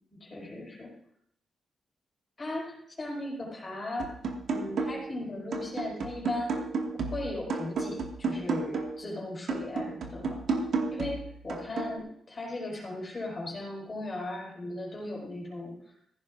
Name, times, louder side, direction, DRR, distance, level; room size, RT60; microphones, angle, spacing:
voice 1, 0.1-0.9 2.4-4.1 4.5-10.4 10.9-15.9, left 2 dB, 30° left, -3 dB, 4.9 m, -37 dB
sound 1, 4.0-5.2 5.5-9.0 9.5-12.0, right 4 dB, 70° right, 1.7 m, -33 dB
16.0 x 15.5 x 2.5 m, 0.69 s
wide cardioid pair, 140°, 0 cm